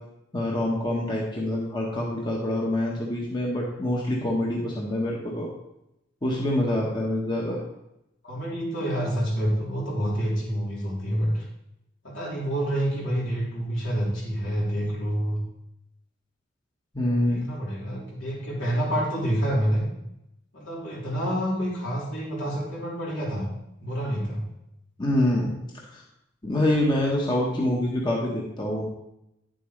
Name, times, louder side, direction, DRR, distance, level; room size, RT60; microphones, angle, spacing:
voice 1, 0.3-5.5 6.2-7.6 16.9-17.5 25.0-25.5 25.9-26.0 26.4-28.8, left 1 dB, 25° left, -3 dB, 1.2 m, -26 dB
voice 2, 8.2-11.5 12.0-15.4 17.3-19.9 20.5-23.5 23.8-24.5, equal, 75° left, -5 dB, 3.5 m, -28 dB
10.0 x 7.7 x 3.3 m, 0.85 s
head